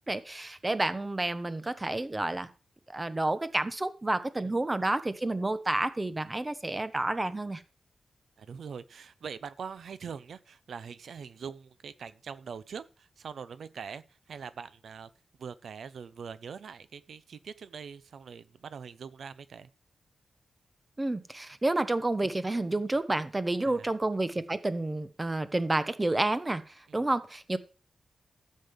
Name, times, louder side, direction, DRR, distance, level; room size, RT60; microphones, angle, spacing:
voice 1, 0.1-2.5 2.9-7.6 21.0-27.6, right 2 dB, 20° right, 0.9 m, -30 dB
voice 2, 8.4-15.1 15.4-19.7 23.6-23.9 26.9-27.0, right 6 dB, 85° right, 0.6 m, -43 dB
13.0 x 7.6 x 5.2 m
wide cardioid pair, 115°, 0 cm